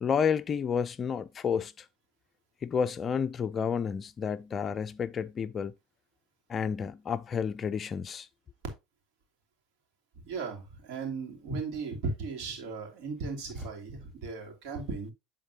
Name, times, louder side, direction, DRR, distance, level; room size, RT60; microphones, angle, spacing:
voice 1, 0.0-1.7 2.6-5.7 6.5-8.3, left 7 dB, 35° left, 0.4 m, -30 dB
voice 2, 10.2-15.1, right 4 dB, 65° right, 2.8 m, -36 dB
10.5 x 4.0 x 2.8 m
supercardioid pair, 100°, 0 cm